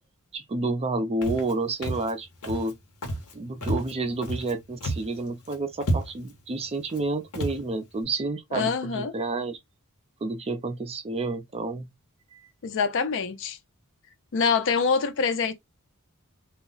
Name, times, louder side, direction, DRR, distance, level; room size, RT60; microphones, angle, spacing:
voice 1, 0.3-2.8 3.3-9.6 10.2-11.9 12.3-12.5, right 2 dB, 30° right, 0.4 m, -30 dB
Walk footsteps, 1.2-1.5 1.8-2.1 2.4-2.7 3.0-3.3 3.6-4.5 4.8-5.2 5.5-5.6 5.8-6.3 6.9-7.0 7.3-7.6, right 1 dB, 75° left, 0.9 m, -30 dB
voice 2, 8.5-9.1 12.6-13.6 14.3-15.5, left 5 dB, 60° left, 0.5 m, -25 dB
2.3 x 2.0 x 3.8 m
head